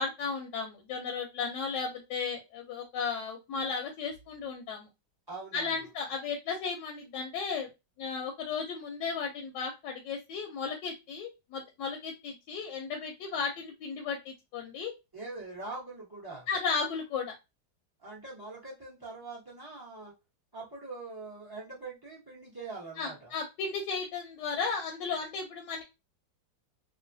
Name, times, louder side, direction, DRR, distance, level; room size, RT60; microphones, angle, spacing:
voice 1, 0.0-4.9 5.5-7.7 8.0-14.9 16.5-17.3 23.0-25.8, left 5 dB, 80° left, 2 dB, 1.2 m, -35 dB
voice 2, 5.3-5.9 15.1-16.5 18.0-20.1 20.5-23.3, right 3 dB, 25° right, -5 dB, 0.4 m, -43 dB
3.1 x 2.1 x 2.6 m, 0.24 s
omnidirectional pair, 2.0 m